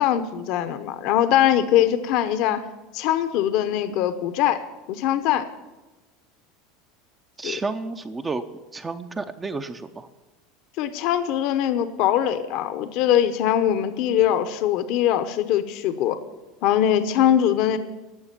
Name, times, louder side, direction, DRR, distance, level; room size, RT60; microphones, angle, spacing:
voice 1, 0.0-2.6 2.9-4.6 4.9-5.4 7.4-7.6 10.8-16.2 16.6-17.8, left 11 dB, 55° left, 11 dB, 0.9 m, -22 dB
voice 2, 7.4-8.4 8.7-10.1, right 3 dB, 15° right, 8 dB, 0.6 m, -31 dB
12.0 x 8.0 x 10.0 m, 1.1 s
supercardioid pair, 140°, 0 cm